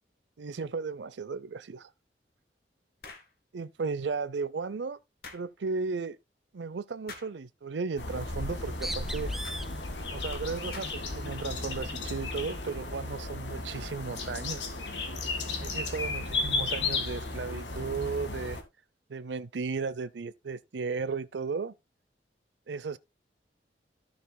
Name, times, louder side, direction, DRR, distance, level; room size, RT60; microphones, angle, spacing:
voice 1, 0.4-1.9 3.5-5.0 5.3-6.2 6.5-9.3 10.1-14.6 15.6-18.6 19.1-21.7 22.7-23.0, right 4 dB, 80° right, 0.6 m, -35 dB
sound 1, 3.0-3.3 5.2-5.5 7.1-7.4 9.4-9.6 10.7-11.1, left 4 dB, 60° left, 2.1 m, -45 dB
sound 2, 8.0-18.6, left 3 dB, 85° left, 1.9 m, -34 dB
Bird, 8.4-13.3, right 1 dB, ahead, 0.6 m, -44 dB
13.5 x 7.0 x 2.2 m
head